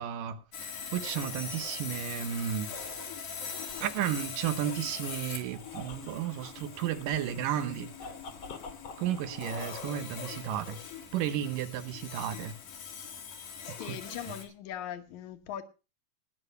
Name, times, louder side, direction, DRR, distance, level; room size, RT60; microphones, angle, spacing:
voice 1, 0.0-2.7 3.8-7.9 9.0-10.8 11.1-12.5 13.8-14.0, right 10 dB, 75° right, 2.5 m, -33 dB
Sawing, 0.5-14.4, left 6 dB, 90° left, 4.2 m, -42 dB
sound 1, 0.8-11.1, left 3 dB, 45° left, 1.9 m, -48 dB
voice 2, 13.7-15.6, left 10 dB, 65° left, 2.4 m, -40 dB
19.0 x 6.5 x 5.4 m
omnidirectional pair, 4.0 m